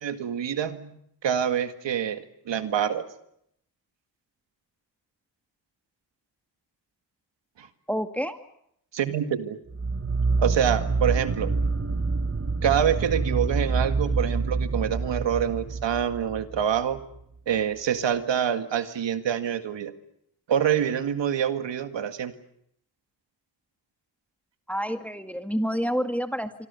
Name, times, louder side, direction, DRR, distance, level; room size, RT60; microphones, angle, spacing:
voice 1, 0.0-1.0 1.2-3.1 7.6-7.7 8.9-9.6 10.4-11.5 12.6-17.0 17.5-19.9 20.5-22.3, right 9 dB, 85° right, 9 dB, 2.0 m, -26 dB
voice 2, 7.9-8.4 24.7-26.7, equal, 5° left, 7 dB, 2.1 m, -28 dB
sound 1, 9.7-17.0, right 4 dB, 30° right, 1.6 m, -27 dB
25.5 x 25.5 x 7.0 m, 0.74 s
cardioid pair, 55°, 43 cm